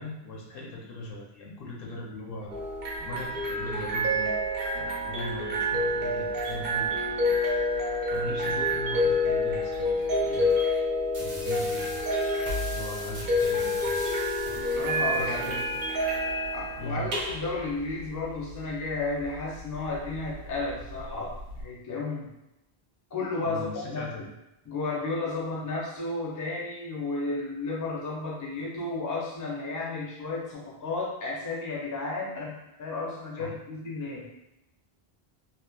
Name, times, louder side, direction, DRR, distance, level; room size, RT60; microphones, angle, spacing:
voice 1, 0.0-2.6 3.0-4.3 4.8-7.3 8.1-10.5 11.2-11.8 12.7-13.8 15.1-15.8 16.8-17.1 23.4-24.3 33.4-33.5, left 1 dB, 70° left, -2 dB, 0.7 m, -39 dB
sound 1, 2.5-21.6, left 1 dB, 65° right, 0.8 m, -29 dB
sound 2, 11.1-16.1, left 1 dB, 40° right, 0.5 m, -40 dB
voice 2, 14.7-15.6 16.5-22.3 23.1-24.3 24.7-34.4, left 3 dB, 30° left, -4 dB, 0.3 m, -33 dB
2.8 x 2.0 x 2.2 m, 0.91 s
omnidirectional pair, 1.0 m